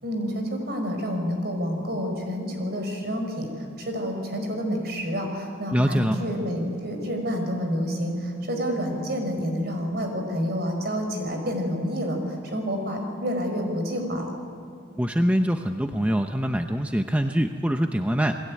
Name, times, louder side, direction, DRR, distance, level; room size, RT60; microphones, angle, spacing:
voice 1, 0.0-14.3, equal, 50° right, 4 dB, 5.1 m, -28 dB
voice 2, 5.7-6.2 15.0-18.4, equal, 5° right, 5 dB, 0.7 m, -24 dB
29.0 x 21.0 x 9.5 m, 2.5 s
head